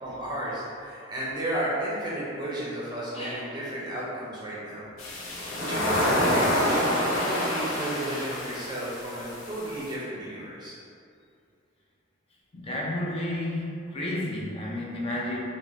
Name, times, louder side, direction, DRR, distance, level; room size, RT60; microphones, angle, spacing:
voice 1, 0.0-4.8 5.6-10.7, right 1 dB, 20° right, -7 dB, 0.5 m, -33 dB
voice 2, 3.1-3.6 5.2-5.3 12.5-15.4, left 1 dB, 30° left, -3 dB, 0.4 m, -32 dB
sound 1, 5.0-9.9, left 1 dB, 90° left, 0.5 m, -27 dB
2.6 x 2.1 x 3.0 m, 2.4 s
head